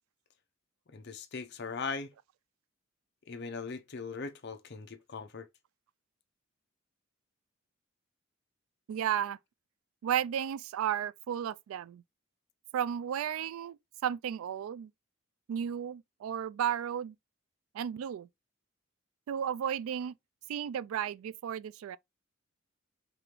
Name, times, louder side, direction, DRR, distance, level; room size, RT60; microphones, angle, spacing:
voice 1, 0.9-2.1 3.3-5.5, left 4 dB, 55° left, 0.6 m, -39 dB
voice 2, 8.9-9.4 10.0-12.0 12.7-14.9 15.5-17.1 17.7-18.3 19.3-20.2 20.5-22.0, right 9 dB, 85° right, 0.3 m, -33 dB
4.8 x 2.5 x 3.0 m
head